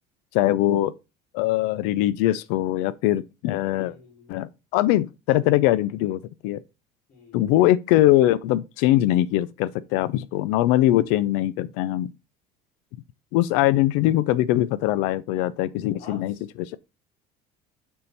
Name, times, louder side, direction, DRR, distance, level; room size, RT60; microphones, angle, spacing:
voice 1, 0.3-0.9 1.3-4.0 4.3-6.6 7.3-12.1 13.3-16.8, left 14 dB, 85° left, 0.4 m, -22 dB
voice 2, 3.7-4.5 7.1-7.4 16.0-16.4, left 3 dB, 45° left, 2.3 m, -47 dB
6.7 x 3.7 x 4.1 m
cardioid pair, 160°, 17 cm